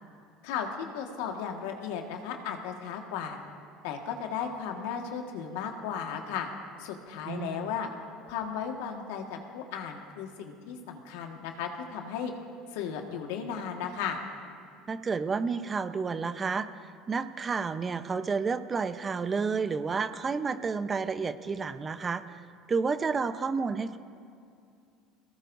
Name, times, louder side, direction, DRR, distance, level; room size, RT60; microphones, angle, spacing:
voice 1, 0.4-3.4 3.8-6.5 6.8-7.9 8.2-12.3 12.7-14.2, left 7 dB, 80° left, 3 dB, 1.7 m, -35 dB
voice 2, 7.3-7.7 14.9-16.7 17.1-22.4 22.7-24.0, right 5 dB, 30° right, 11 dB, 0.8 m, -30 dB
22.0 x 18.0 x 2.7 m, 2.4 s
hypercardioid pair, 85°, 0 cm